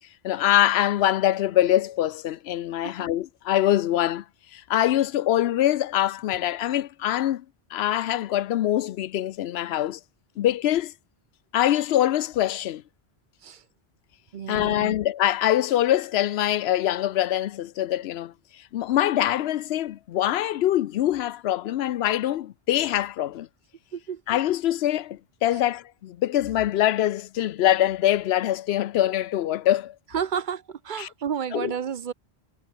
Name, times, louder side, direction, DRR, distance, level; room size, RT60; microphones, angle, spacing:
voice 1, 0.2-4.2 4.5-7.4 7.7-10.0 10.4-10.9 11.5-12.8 14.5-23.5 24.3-29.9 31.0-31.1 31.5-31.7, left 12 dB, 80° left, 0.8 m, -24 dB
voice 2, 14.3-14.9 23.9-24.2 30.1-32.1, right 7 dB, 55° right, 0.8 m, -31 dB
omnidirectional pair, 1.1 m